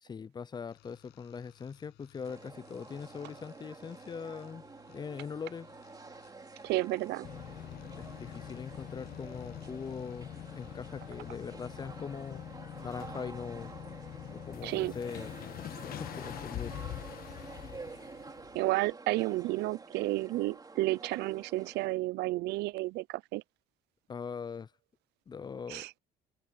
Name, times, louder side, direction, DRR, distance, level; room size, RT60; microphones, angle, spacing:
voice 1, 0.0-5.7 7.9-10.3 10.6-12.4 12.8-13.8 14.3-15.3 15.7-16.7 24.1-24.7 25.3-25.8, left 6 dB, 25° left, 0.4 m, -41 dB
sound 1, 0.6-11.3, left 18 dB, 85° left, 7.1 m, -62 dB
sound 2, 2.2-21.9, right 4 dB, 20° right, 3.8 m, -49 dB
voice 2, 6.6-7.3 14.6-14.9 18.5-23.4 25.7-25.9, right 19 dB, 80° right, 0.5 m, -31 dB
sound 3, 7.2-18.6, left 12 dB, 60° left, 1.3 m, -44 dB
cardioid pair, 110°, 17 cm